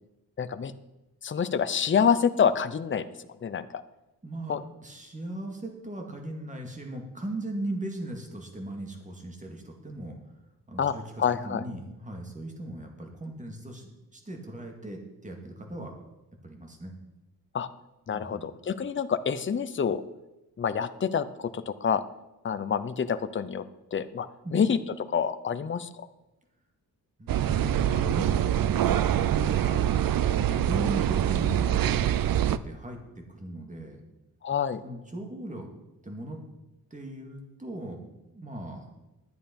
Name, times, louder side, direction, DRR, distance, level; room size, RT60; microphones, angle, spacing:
voice 1, 0.4-0.7 1.2-3.1 3.4-3.8 4.5-4.6 10.8-11.6 17.5-17.7 18.1-20.0 20.6-22.0 22.4-23.6 23.9-24.3 24.5-24.8 25.1-25.9 34.4-34.8, left 7 dB, 35° left, 12 dB, 0.6 m, -27 dB
voice 2, 4.2-10.2 10.7-15.9 16.4-16.9 18.1-18.5 24.4-24.6 27.2-28.4 28.9-29.9 30.3-32.1 32.4-34.0 34.8-35.7 36.0-36.4 36.9-38.0 38.3-38.9, right 1 dB, 20° right, 2 dB, 2.1 m, -38 dB
sound 1, 27.3-32.6, right 11 dB, 65° right, 0.5 m, -25 dB
11.5 x 9.1 x 5.2 m, 0.97 s
wide cardioid pair, 130°, 37 cm